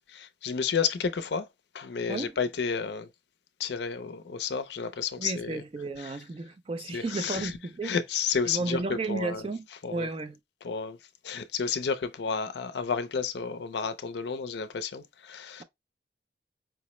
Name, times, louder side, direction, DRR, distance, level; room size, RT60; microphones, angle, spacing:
voice 1, 0.1-1.5 1.7-3.1 3.6-5.6 6.0-6.2 6.9-7.5 7.8-9.4 9.8-10.1 10.6-11.0 11.2-15.6, left 6 dB, 70° left, 0.4 m, -31 dB
voice 2, 5.2-8.0 8.5-9.7 9.9-10.4, right 3 dB, 30° right, 0.3 m, -33 dB
4.7 x 2.0 x 3.0 m
head